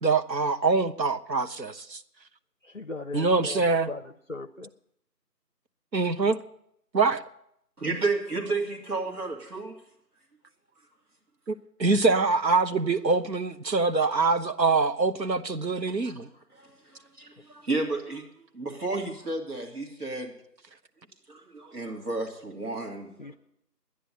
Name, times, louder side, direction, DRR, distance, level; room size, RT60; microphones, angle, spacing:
voice 1, 0.0-2.0 3.1-3.9 5.9-6.4 6.9-7.2 11.5-16.3, right 4 dB, 85° right, 1.2 m, -24 dB
voice 2, 2.6-4.0 4.3-4.7 23.2-23.3, left 3 dB, 50° left, 0.6 m, -38 dB
voice 3, 7.8-9.8 16.0-16.1 16.5-20.3 21.3-23.1, right 3 dB, 65° right, 2.7 m, -32 dB
12.0 x 10.0 x 7.6 m
figure-of-eight pair, 175°, 50 cm